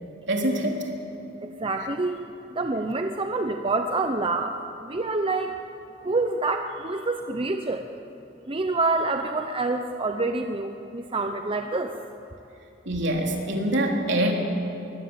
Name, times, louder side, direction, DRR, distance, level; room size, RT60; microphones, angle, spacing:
voice 1, 0.3-0.8 12.9-14.3, right 1 dB, 65° right, 0 dB, 3.8 m, -24 dB
voice 2, 1.4-2.2 2.5-5.5 6.0-7.9 8.5-11.9, right 3 dB, 30° right, 5 dB, 0.8 m, -27 dB
23.0 x 20.0 x 8.9 m, 2.9 s
head